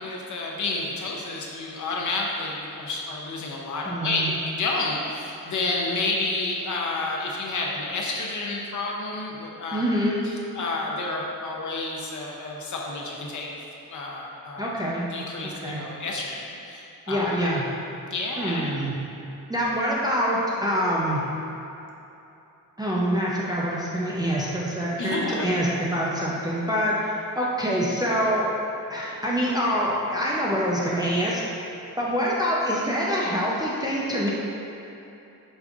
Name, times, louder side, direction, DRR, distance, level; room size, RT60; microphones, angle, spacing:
voice 1, 0.0-10.0 10.2-13.5 13.9-14.7 15.1-17.3 18.1-18.7 25.0-25.5, left 2 dB, 60° left, -2 dB, 0.6 m, -30 dB
voice 2, 3.9-4.4 9.7-10.2 14.6-15.0 15.4-15.8 17.1-17.6 18.4-18.9 19.5-21.2 22.8-28.5 28.9-31.4 32.0-34.3, equal, 15° right, -6 dB, 0.3 m, -25 dB
5.2 x 3.6 x 2.3 m, 2.9 s
wide cardioid pair, 170°, 35 cm